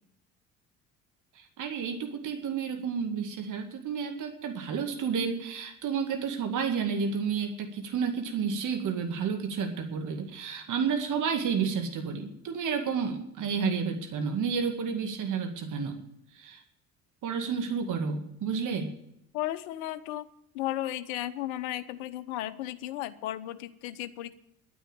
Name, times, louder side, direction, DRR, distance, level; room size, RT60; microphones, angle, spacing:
voice 1, 1.4-16.0 16.3-16.6 17.2-18.9, right 6 dB, 45° right, 5 dB, 2.1 m, -31 dB
voice 2, 19.3-20.2 20.5-24.3, left 14 dB, 65° left, 11 dB, 1.0 m, -34 dB
11.5 x 9.4 x 8.7 m, 0.79 s
figure-of-eight pair, 60°, 41 cm